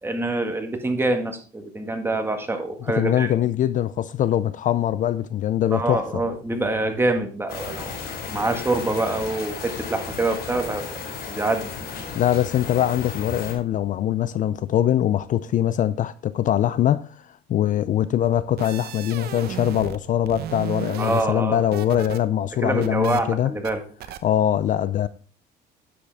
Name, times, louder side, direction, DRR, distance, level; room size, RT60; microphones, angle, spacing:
voice 1, 0.0-3.3 5.7-8.0 8.3-11.0 11.3-11.7 21.0-21.6 22.6-23.8, right 2 dB, 15° right, 1.7 m, -25 dB
voice 2, 3.0-6.2 12.1-17.1 17.5-23.5 24.2-25.1, left 11 dB, 50° left, 0.4 m, -22 dB
sound 1, 7.5-13.5, left 5 dB, 70° left, 4.0 m, -34 dB
sound 2, 18.4-20.0 20.3-22.2 22.5-23.2 23.6-23.7 24.0-24.2, right 10 dB, 70° right, 0.9 m, -35 dB
9.9 x 7.8 x 3.5 m
cardioid pair, 110°, 17 cm